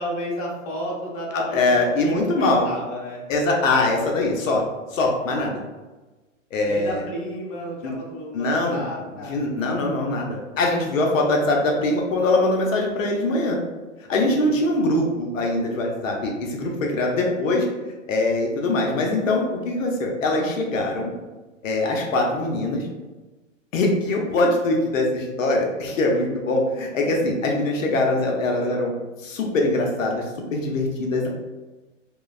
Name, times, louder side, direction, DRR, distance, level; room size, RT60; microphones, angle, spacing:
voice 1, 0.0-1.7 2.0-3.2 6.6-9.5 14.2-14.6 18.8-19.1 28.6-28.8, equal, 30° left, -4 dB, 0.7 m, -33 dB
voice 2, 1.3-2.7 3.3-4.6 4.9-5.6 6.5-7.0 7.8-7.9 8.3-8.8 9.2-13.6 14.1-17.7 18.1-21.1 21.6-22.9 23.7-28.9 29.2-30.2 30.5-31.3, left 2 dB, 85° left, 0 dB, 0.7 m, -22 dB
2.9 x 2.2 x 2.4 m, 1.2 s
hypercardioid pair, 135°, 39 cm